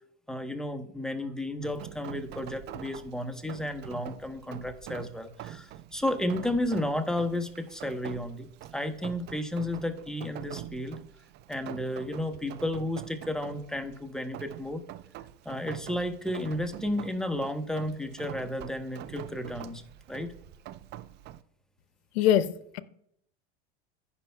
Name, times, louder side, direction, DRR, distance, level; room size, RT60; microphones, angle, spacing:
voice 1, 0.3-8.5 8.7-11.0 11.5-14.8 15.4-19.8 20.1-20.3, left 1 dB, ahead, 0.9 m, -32 dB
Rain, 1.6-21.4, right 12 dB, 35° right, 0.4 m, -45 dB
voice 2, 22.1-22.8, left 11 dB, 70° left, 0.7 m, -24 dB
15.5 x 5.6 x 2.3 m
hypercardioid pair, 95°, 32 cm